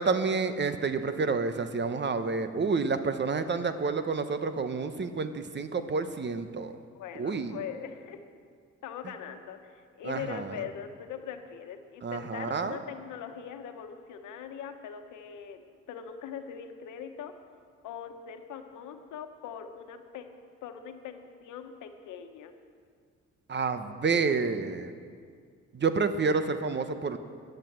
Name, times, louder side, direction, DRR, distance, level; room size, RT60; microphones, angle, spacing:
voice 1, 0.0-6.7 7.2-7.6 10.0-10.5 12.0-12.8 23.5-24.9 25.7-27.2, right 4 dB, 35° right, 10 dB, 1.0 m, -29 dB
voice 2, 6.9-8.2 8.8-15.6 15.9-17.3 17.8-20.3 20.6-22.5, left 8 dB, 85° left, 6 dB, 1.2 m, -41 dB
13.5 x 9.2 x 7.5 m, 2.1 s
cardioid pair, 90°, 30 cm